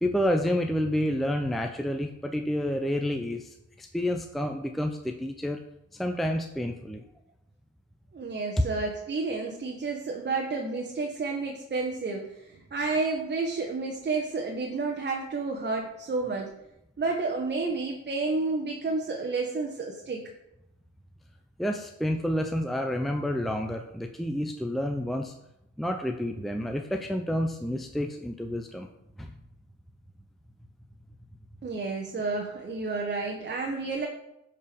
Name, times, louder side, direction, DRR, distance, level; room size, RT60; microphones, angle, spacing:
voice 1, 0.0-5.6 5.9-7.0 21.6-25.3 25.8-28.9 29.2-29.3, equal, ahead, 4 dB, 0.7 m, -29 dB
voice 2, 8.1-16.5 17.0-20.2 31.6-34.1, right 3 dB, 35° right, 0 dB, 1.4 m, -30 dB
10.5 x 4.8 x 5.2 m, 0.86 s
cardioid pair, 90°, 30 cm